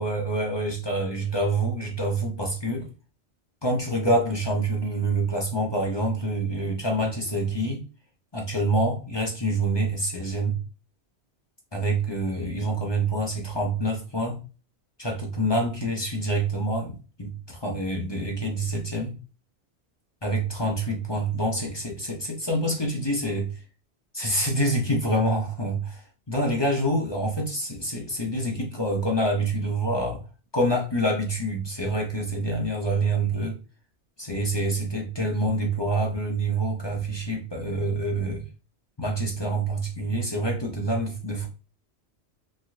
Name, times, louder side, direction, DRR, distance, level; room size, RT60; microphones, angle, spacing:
voice 1, 0.0-2.9 3.6-7.8 8.3-10.6 11.7-14.5 15.0-19.2 20.2-23.6 24.1-30.2 30.5-33.6 34.2-38.4 39.0-41.5, right 1 dB, 35° left, 0.5 m, -26 dB
3.2 x 2.7 x 2.5 m
omnidirectional pair, 1.1 m